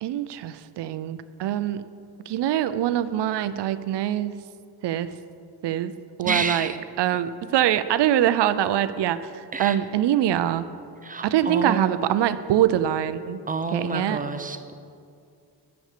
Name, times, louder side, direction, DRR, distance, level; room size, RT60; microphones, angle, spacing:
voice 1, 0.0-1.8 2.3-4.4 4.8-5.1 5.6-5.9 6.2-6.7 7.0-10.7 11.2-13.4 13.7-14.2, right 11 dB, 70° right, 14 dB, 0.6 m, -24 dB
voice 2, 6.2-6.8 9.5-9.8 11.0-12.2 13.5-14.8, right 4 dB, 20° right, 8 dB, 0.6 m, -29 dB
8.2 x 6.3 x 6.6 m, 2.3 s
cardioid pair, 100°, 43 cm